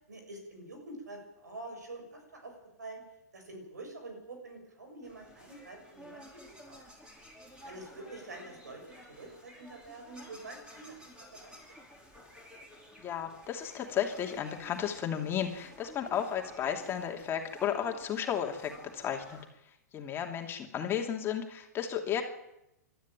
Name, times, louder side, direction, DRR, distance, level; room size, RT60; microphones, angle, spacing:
voice 1, 0.1-2.5 2.8-3.0 3.3-6.4 6.7-6.8 7.6-11.6, right 2 dB, 85° right, 4 dB, 6.8 m, -46 dB
sound 1, 5.0-19.4, equal, 10° right, 5.5 m, -53 dB
voice 2, 13.0-19.4 19.9-22.2, left 9 dB, 25° left, 3 dB, 2.8 m, -33 dB
22.5 x 13.0 x 9.1 m, 0.87 s
hypercardioid pair, 115°, 9 cm